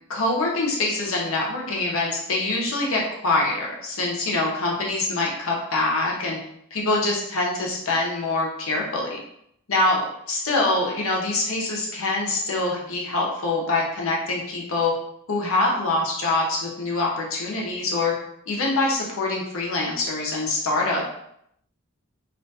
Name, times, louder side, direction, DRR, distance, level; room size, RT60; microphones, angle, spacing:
voice 1, 0.1-6.4 6.7-9.2 9.7-14.9 15.3-18.1 18.5-21.0, left 2 dB, 70° left, -2 dB, 0.7 m, -24 dB
2.4 x 2.2 x 2.6 m, 0.73 s
head